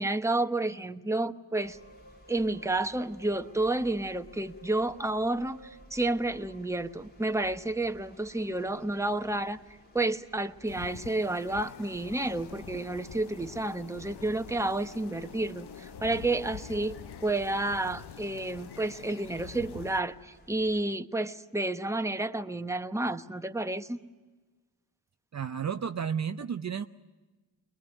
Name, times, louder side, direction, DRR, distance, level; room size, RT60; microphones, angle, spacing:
voice 1, 0.0-1.8 2.3-9.6 9.9-24.0, right 2 dB, 5° right, 8 dB, 1.0 m, -30 dB
sound 1, 1.6-20.8, left 1 dB, 20° left, 2.7 m, -55 dB
sound 2, 10.6-20.0, left 9 dB, 65° left, 1.0 m, -46 dB
voice 2, 25.3-26.8, right 7 dB, 40° right, 9 dB, 0.7 m, -32 dB
21.5 x 21.0 x 9.1 m, 1.2 s
cardioid pair, 65°, 43 cm